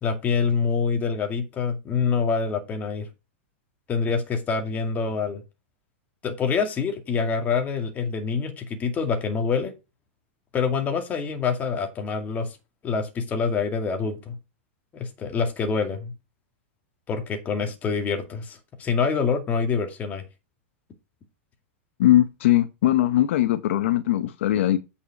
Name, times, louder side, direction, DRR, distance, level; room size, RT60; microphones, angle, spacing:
voice 1, 0.0-3.1 3.9-5.4 6.2-9.7 10.5-12.6 12.8-14.4 14.9-16.1 17.1-20.2, left 5 dB, 25° left, 2.2 m, -26 dB
voice 2, 22.0-24.8, left 13 dB, 70° left, 0.9 m, -20 dB
8.5 x 5.6 x 5.1 m
supercardioid pair, 140°, 7 cm